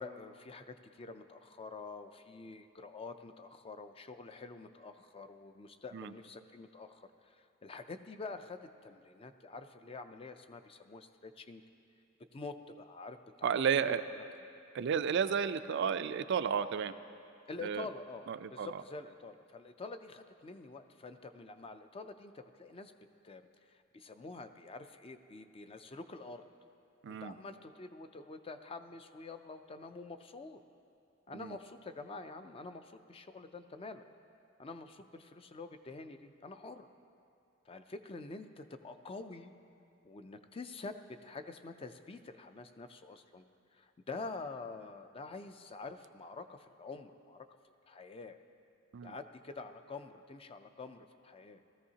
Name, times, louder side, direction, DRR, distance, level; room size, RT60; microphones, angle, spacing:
voice 1, 0.0-11.6 12.3-14.2 17.5-22.9 23.2-23.4 23.7-26.4 27.2-30.6 31.3-34.0 34.6-36.9 37.7-39.5 40.0-43.4 43.7-48.4 49.0-51.6, left 3 dB, 30° left, 9 dB, 0.4 m, -47 dB
voice 2, 13.4-14.0 14.7-16.9 17.6-17.8 18.3-18.7 27.0-27.3 31.3-31.5 48.9-49.1, right 7 dB, 60° right, 11 dB, 0.4 m, -32 dB
16.5 x 14.0 x 2.8 m, 2.5 s
head